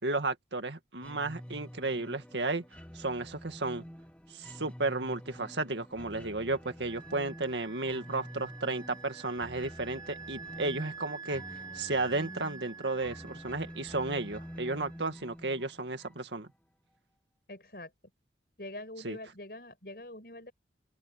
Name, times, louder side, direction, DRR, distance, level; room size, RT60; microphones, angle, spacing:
voice 1, 0.0-2.6 2.9-3.8 4.3-11.4 11.7-16.5 19.0-19.2, right 2 dB, 90° right, 2.2 m, -33 dB
sound 1, 1.0-16.5, equal, 5° left, 1.6 m, -48 dB
Wind instrument woodwind instrument, 6.8-15.1, right 5 dB, 20° right, 5.9 m, -48 dB
voice 2, 17.5-17.9 18.6-20.5, left 1 dB, 60° left, 6.7 m, -44 dB
open air
head